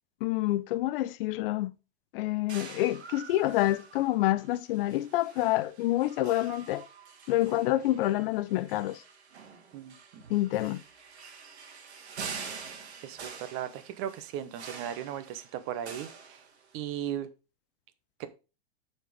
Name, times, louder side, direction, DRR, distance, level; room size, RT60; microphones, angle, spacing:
voice 1, 0.2-1.7 2.1-6.9 7.3-9.0 10.3-10.8, left 15 dB, 60° left, 0.6 m, -27 dB
sound 1, 2.5-17.0, right 6 dB, 90° right, 1.7 m, -46 dB
voice 2, 9.7-10.2 13.0-16.4 16.7-17.3 18.2-18.3, right 10 dB, 40° right, 0.9 m, -37 dB
6.3 x 4.4 x 5.0 m
hypercardioid pair, 120°, 32 cm